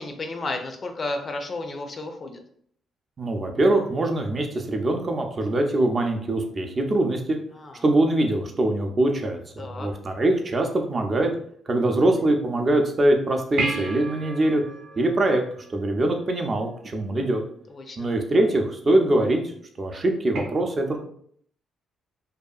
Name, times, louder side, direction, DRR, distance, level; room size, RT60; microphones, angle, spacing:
voice 1, 0.0-2.4 7.6-7.7 9.6-9.9 17.7-18.1, left 2 dB, 40° left, 5 dB, 0.4 m, -32 dB
voice 2, 3.2-7.4 7.8-11.3 11.7-14.6 15.0-15.4 15.7-17.4 18.0-21.0, right 1 dB, 35° right, 3 dB, 0.5 m, -23 dB
sound 1, 13.6-16.3 20.3-20.4, right 2 dB, 75° right, 0.6 m, -32 dB
2.7 x 2.4 x 2.3 m, 0.62 s
cardioid pair, 90°, 0 cm